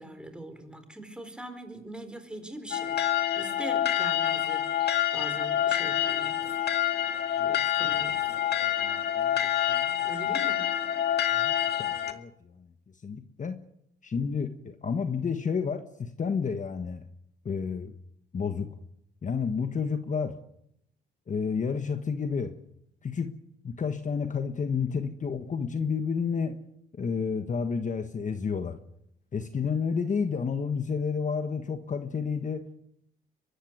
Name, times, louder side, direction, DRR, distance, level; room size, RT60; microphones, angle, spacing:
voice 1, 0.0-3.0 3.3-4.7 5.1-6.4 7.4-8.2 10.0-10.7, right 1 dB, 5° right, 8 dB, 4.3 m, -41 dB
sound 1, 2.7-12.1, left 10 dB, 55° left, 2.2 m, -27 dB
voice 2, 8.6-10.0 11.3-12.7 13.0-13.6 14.0-17.0 17.4-17.9 18.3-18.7 19.2-20.3 21.3-22.5 23.0-23.3 23.6-26.6 26.9-28.8 29.3-32.6, left 5 dB, 40° left, 8 dB, 1.4 m, -31 dB
24.0 x 14.0 x 9.4 m, 0.77 s
cardioid pair, 90°, 20 cm